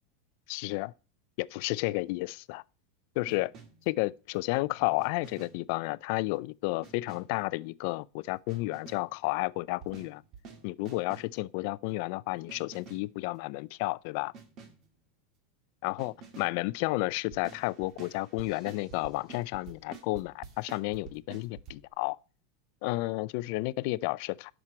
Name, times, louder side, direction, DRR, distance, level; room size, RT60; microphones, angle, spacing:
voice 1, 0.5-0.9 1.4-2.6 3.2-3.5 3.9-10.2 10.6-14.3 15.8-22.2 22.8-24.5, left 22 dB, 60° left, 0.4 m, -32 dB
sound 1, 3.3-3.9 5.0-5.7 6.8-7.4 8.5-9.2 9.8-11.4 12.5-13.2 14.3-14.9 16.0-16.6 17.3-21.7, right 5 dB, 40° right, 2.0 m, -50 dB
11.0 x 6.1 x 4.3 m
supercardioid pair, 135°, 0 cm